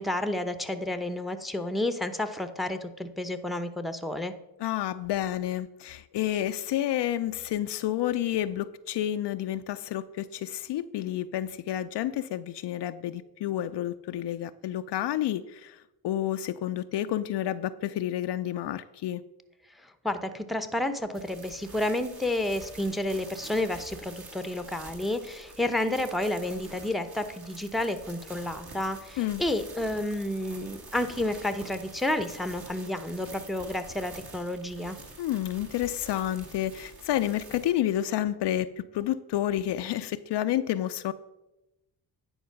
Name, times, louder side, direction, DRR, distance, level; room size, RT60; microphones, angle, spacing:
voice 1, 0.0-4.3 19.8-35.0, left 1 dB, ahead, 10 dB, 0.7 m, -30 dB
voice 2, 4.6-19.2 29.2-29.4 35.2-41.1, left 12 dB, 60° left, 11 dB, 0.5 m, -30 dB
sound 1, 21.1-37.7, right 3 dB, 50° right, 2.1 m, -47 dB
10.0 x 4.4 x 5.7 m, 0.96 s
supercardioid pair, 60°, 47 cm